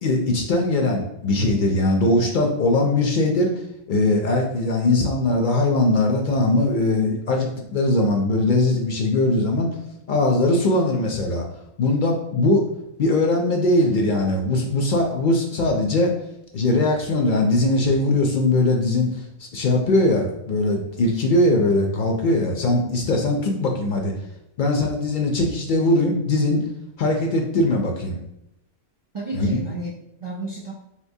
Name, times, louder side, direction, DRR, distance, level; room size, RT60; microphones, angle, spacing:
voice 1, 0.0-3.5 3.9-9.7 10.1-11.4 11.8-12.6 13.0-16.1 16.5-24.1 24.6-26.6 27.0-28.2 29.3-29.6, left 2 dB, 60° left, 2 dB, 0.6 m, -20 dB
voice 2, 29.1-30.7, right 2 dB, 50° right, -5 dB, 0.3 m, -32 dB
3.6 x 2.7 x 2.7 m, 0.83 s
omnidirectional pair, 1.1 m